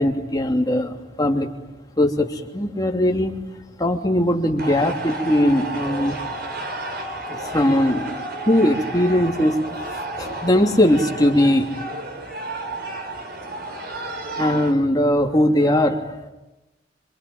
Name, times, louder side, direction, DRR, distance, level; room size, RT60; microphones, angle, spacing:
voice 1, 0.0-1.5 2.0-3.4 3.8-6.2 7.3-8.1 8.5-9.5 9.8-11.7 14.4-16.3, left 1 dB, 20° left, 2 dB, 3.0 m, -20 dB
sound 1, 4.6-14.7, right 1 dB, 55° right, 4.7 m, -31 dB
26.5 x 25.0 x 9.0 m, 1.0 s
head